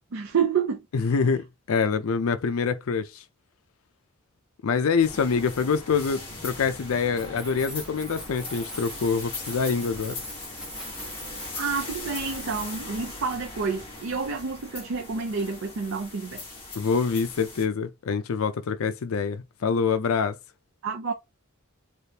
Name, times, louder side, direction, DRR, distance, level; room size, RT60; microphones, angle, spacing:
voice 1, 0.1-0.8 11.6-16.4 20.8-21.1, right 5 dB, 65° right, 0.5 m, -29 dB
voice 2, 0.9-3.2 4.6-10.1 16.8-20.3, left 5 dB, 75° left, 0.4 m, -25 dB
sound 1, 5.0-17.7, left 2 dB, 25° left, 1.5 m, -40 dB
Keys jangling, 7.1-13.2, equal, 5° right, 0.6 m, -42 dB
3.4 x 2.3 x 2.8 m
head